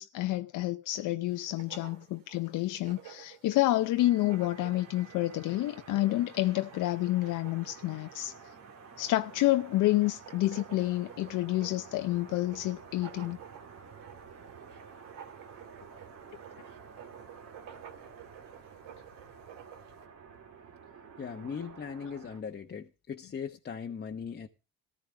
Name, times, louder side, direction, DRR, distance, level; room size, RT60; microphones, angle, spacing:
voice 1, 0.0-8.3 9.0-13.4, left 16 dB, 70° left, 0.7 m, -29 dB
Writing, 1.3-20.1, right 9 dB, 85° right, 2.4 m, -53 dB
sound 1, 4.0-22.4, right 5 dB, 55° right, 2.4 m, -51 dB
voice 2, 21.2-24.5, left 6 dB, 30° left, 1.0 m, -39 dB
14.0 x 12.5 x 3.4 m
cardioid pair, 95°, 32 cm